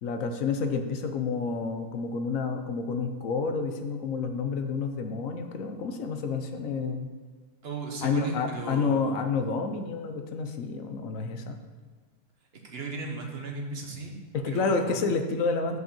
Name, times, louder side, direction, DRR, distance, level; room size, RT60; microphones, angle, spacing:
voice 1, 0.0-7.1 8.0-11.6 14.3-15.8, left 4 dB, 65° left, 6 dB, 1.1 m, -29 dB
voice 2, 7.6-9.1 12.6-14.2 14.5-15.0, right 3 dB, 45° right, 1 dB, 1.3 m, -36 dB
6.3 x 5.3 x 6.9 m, 1.4 s
omnidirectional pair, 1.6 m